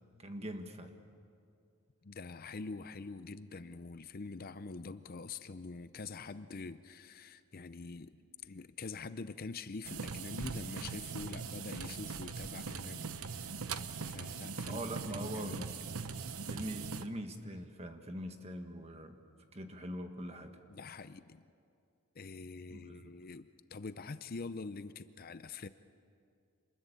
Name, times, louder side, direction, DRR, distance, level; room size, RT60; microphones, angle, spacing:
voice 1, 0.2-0.9 14.3-15.7 16.5-19.2 19.5-20.5 22.7-23.1, right 1 dB, 30° right, 6 dB, 1.6 m, -43 dB
voice 2, 2.0-13.6 14.0-15.8 20.7-21.4 22.1-25.7, left 4 dB, 40° left, 12 dB, 0.6 m, -45 dB
sound 1, 9.8-17.1, right 5 dB, 75° right, 0.9 m, -41 dB
27.0 x 21.0 x 8.4 m, 2.4 s
head